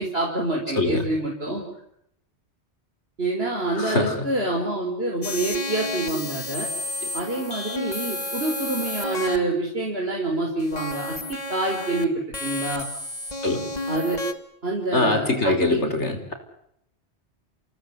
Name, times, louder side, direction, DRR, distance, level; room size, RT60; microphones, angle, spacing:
voice 1, 0.0-1.6 3.2-6.7 7.1-12.1 12.4-12.9 13.9-14.2 14.6-15.8, right 2 dB, 60° right, 0 dB, 5.1 m, -27 dB
voice 2, 3.8-4.2 13.4-13.6 14.9-16.3, left 2 dB, 90° left, 7 dB, 5.1 m, -23 dB
sound 1, 5.2-9.4 10.6-12.0 12.3-14.3, left 2 dB, 40° left, 2.3 m, -31 dB
28.5 x 18.5 x 9.8 m, 0.75 s
omnidirectional pair, 1.1 m